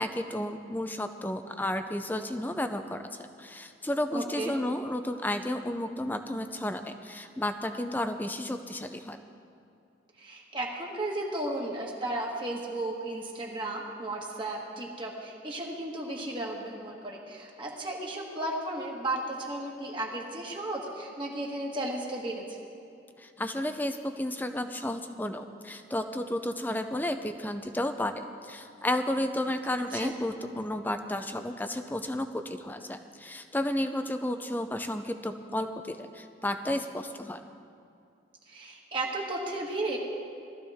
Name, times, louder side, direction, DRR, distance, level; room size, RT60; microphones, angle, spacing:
voice 1, 0.0-9.2 23.2-37.4, left 1 dB, 10° left, 7 dB, 0.5 m, -32 dB
voice 2, 4.1-4.6 10.2-22.6 29.9-30.1 38.5-40.0, right 1 dB, 25° right, -2 dB, 1.6 m, -34 dB
19.0 x 14.0 x 3.6 m, 2.5 s
head